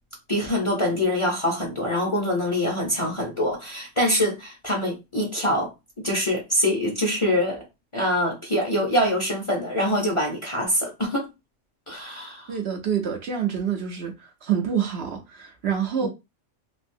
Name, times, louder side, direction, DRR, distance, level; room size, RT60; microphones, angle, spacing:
voice 1, 0.3-5.7 6.0-7.7 7.9-11.3 11.9-12.5 16.0-16.1, left 1 dB, 30° left, 0.7 m, -24 dB
voice 2, 12.5-16.1, right 8 dB, 60° right, 0.8 m, -27 dB
3.3 x 2.5 x 2.6 m
omnidirectional pair, 1.3 m